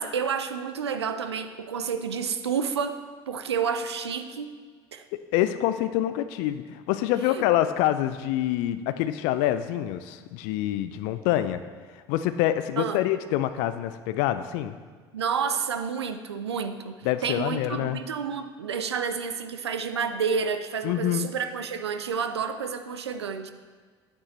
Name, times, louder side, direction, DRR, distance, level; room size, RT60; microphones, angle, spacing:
voice 1, 0.0-3.0 3.3-4.5 4.9-5.0 7.3-7.4 12.8-13.0 15.1-23.5, right 6 dB, 80° right, 9 dB, 0.5 m, -30 dB
voice 2, 5.3-11.6 12.1-14.8 17.0-18.0 20.8-21.3, left 13 dB, 55° left, 11 dB, 0.4 m, -26 dB
9.7 x 8.5 x 3.2 m, 1.5 s
figure-of-eight pair, 65°, 14 cm